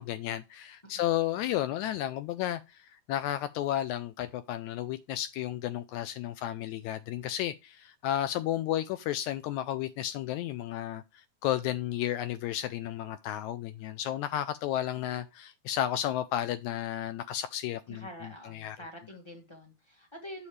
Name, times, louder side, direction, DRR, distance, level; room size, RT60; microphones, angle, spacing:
voice 1, 0.0-18.0 18.5-18.8, left 12 dB, 80° left, 1.8 m, -33 dB
voice 2, 17.9-20.5, equal, 25° left, 0.6 m, -46 dB
7.0 x 6.6 x 3.2 m
omnidirectional pair, 3.6 m